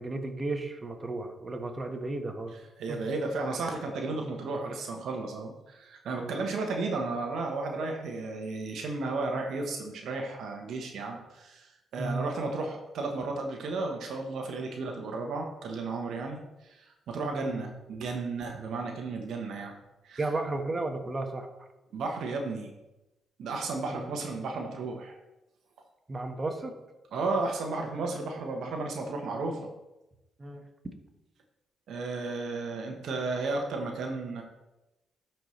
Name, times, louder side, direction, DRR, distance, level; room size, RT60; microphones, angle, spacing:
voice 1, 0.0-2.5 2.9-3.0 6.2-6.4 12.0-12.3 17.4-17.7 20.2-21.5 23.9-24.1 26.1-26.7 30.4-30.6, right 2 dB, 30° right, 4 dB, 1.3 m, -34 dB
voice 2, 2.8-19.7 20.0-20.3 21.9-22.7 23.4-25.2 27.1-29.7 31.9-34.4, right 3 dB, 70° right, 2 dB, 1.0 m, -33 dB
12.5 x 4.5 x 3.2 m, 0.99 s
supercardioid pair, 60°, 0 cm